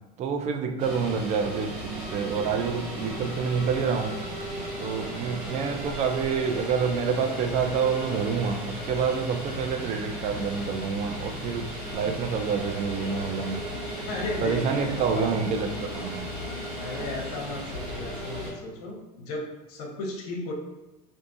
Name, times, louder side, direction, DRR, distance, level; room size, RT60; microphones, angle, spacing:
voice 1, 0.2-4.2 4.8-13.6 14.4-16.3, right 6 dB, 35° right, 6 dB, 0.3 m, -28 dB
sound 1, 0.8-18.5, equal, 75° right, 1.4 m, -35 dB
voice 2, 14.1-15.3 16.8-20.5, left 2 dB, 65° left, 1 dB, 0.7 m, -35 dB
2.5 x 2.4 x 2.5 m, 1.0 s
hypercardioid pair, 90°, 20 cm